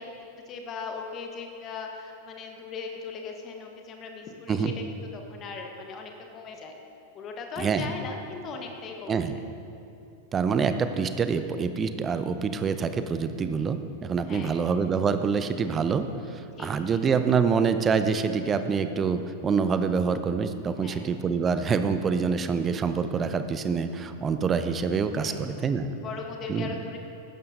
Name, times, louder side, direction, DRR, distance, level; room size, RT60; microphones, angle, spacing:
voice 1, 0.0-6.8 7.1-9.4 14.2-14.6 16.6-17.0 20.8-21.1 25.2-25.7 26.0-27.0, left 4 dB, 30° left, 3 dB, 1.2 m, -39 dB
voice 2, 7.6-7.9 9.1-9.3 10.3-16.0 16.6-25.9 26.5-26.7, right 5 dB, 20° right, 10 dB, 0.6 m, -26 dB
15.5 x 12.0 x 2.7 m, 2.7 s
figure-of-eight pair, 90°, 0 cm